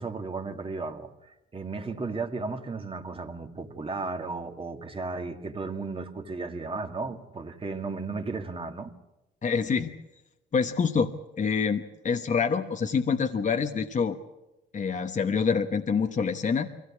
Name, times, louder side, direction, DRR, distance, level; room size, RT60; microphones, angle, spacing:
voice 1, 0.0-8.9, right 3 dB, 25° right, 5 dB, 2.1 m, -35 dB
voice 2, 9.4-9.9 10.5-11.1 11.4-14.2 14.7-16.7, left 6 dB, 40° left, 6 dB, 1.2 m, -26 dB
23.0 x 17.0 x 8.6 m, 0.97 s
cardioid pair, 90°, 20 cm